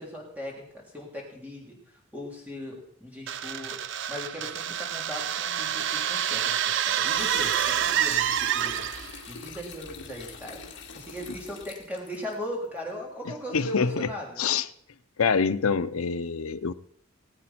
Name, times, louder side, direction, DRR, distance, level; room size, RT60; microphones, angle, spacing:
voice 1, 0.0-1.7 2.1-8.8 9.3-14.4, left 1 dB, 10° right, -2 dB, 3.5 m, -38 dB
sound 1, 3.3-9.2, right 10 dB, 60° right, 0.5 m, -27 dB
sound 2, 7.1-12.4, left 5 dB, 60° left, 1.9 m, -43 dB
voice 2, 13.5-14.1 14.4-14.7 15.2-16.7, left 5 dB, 85° left, 13 dB, 0.6 m, -25 dB
19.5 x 8.6 x 4.4 m, 0.67 s
head